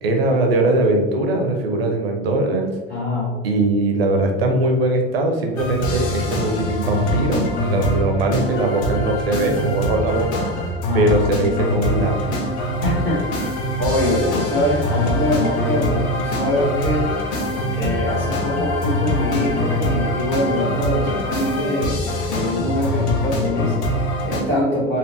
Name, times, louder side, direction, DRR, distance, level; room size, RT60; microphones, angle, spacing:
voice 1, 0.0-2.7 3.4-10.5 10.9-12.4, right 2 dB, 75° right, 3 dB, 0.6 m, -20 dB
voice 2, 2.9-3.7 10.9-11.3 12.8-17.1 17.7-25.0, left 1 dB, 90° left, -13 dB, 1.4 m, -23 dB
sound 1, 5.6-24.4, left 1 dB, 50° left, 0.9 m, -23 dB
4.2 x 2.6 x 2.5 m, 1.4 s
figure-of-eight pair, 70°, 30 cm